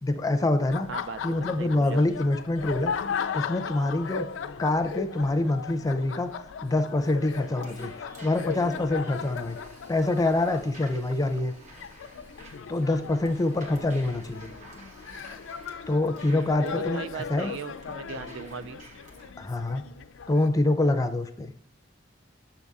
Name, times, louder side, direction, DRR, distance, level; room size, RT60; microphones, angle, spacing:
voice 1, 0.0-0.9 1.2-2.9 3.3-4.3 4.6-6.3 6.6-9.6 9.9-11.5 12.7-14.5 15.9-17.5 19.4-19.8 20.3-21.5, left 2 dB, 20° left, 8 dB, 0.5 m, -25 dB
Laughter, 0.6-20.5, left 6 dB, 85° left, 0.4 m, -37 dB
voice 2, 0.9-2.0 16.3-18.8, right 6 dB, 80° right, 13 dB, 0.4 m, -38 dB
sound 1, 7.2-19.3, right 1 dB, 40° right, 1.4 m, -51 dB
7.0 x 3.6 x 4.0 m, 0.64 s
head